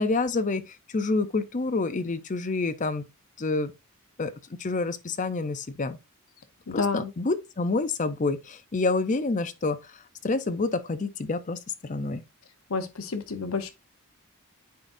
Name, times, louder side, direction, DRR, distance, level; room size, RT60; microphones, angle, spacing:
voice 1, 0.0-3.0 3.4-3.7 4.2-4.3 4.6-6.0 6.7-9.9 10.2-12.2, left 3 dB, 35° left, 0.6 m, -28 dB
voice 2, 6.7-7.1 12.7-13.7, left 4 dB, 65° left, 0.9 m, -29 dB
9.3 x 4.1 x 2.6 m
head